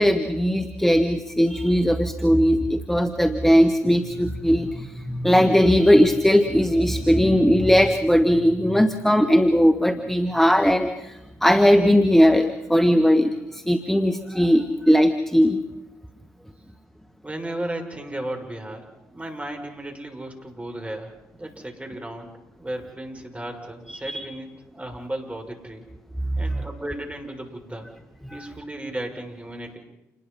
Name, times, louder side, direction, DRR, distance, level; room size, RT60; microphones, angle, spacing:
voice 1, 0.0-15.6 24.0-24.3 28.3-28.5, equal, 5° left, 8 dB, 1.8 m, -19 dB
voice 2, 17.2-25.9 26.4-27.9 28.3-29.8, right 1 dB, 15° right, 3 dB, 6.5 m, -35 dB
28.5 x 20.5 x 5.7 m, 0.97 s
hypercardioid pair, 45°, 8 cm